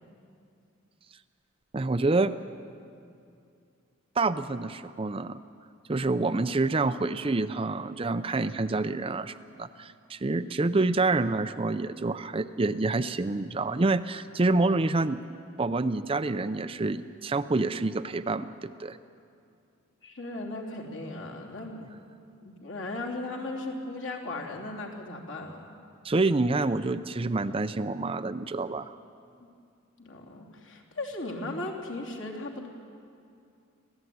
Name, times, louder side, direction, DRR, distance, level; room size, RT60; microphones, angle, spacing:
voice 1, 1.7-2.4 4.2-5.4 5.9-15.2 15.6-19.0 26.0-28.9, right 3 dB, 25° right, 11 dB, 0.5 m, -27 dB
voice 2, 20.0-21.9 22.4-25.8 30.0-32.7, left 2 dB, 65° left, 0 dB, 3.2 m, -37 dB
25.5 x 16.5 x 9.4 m, 2.5 s
head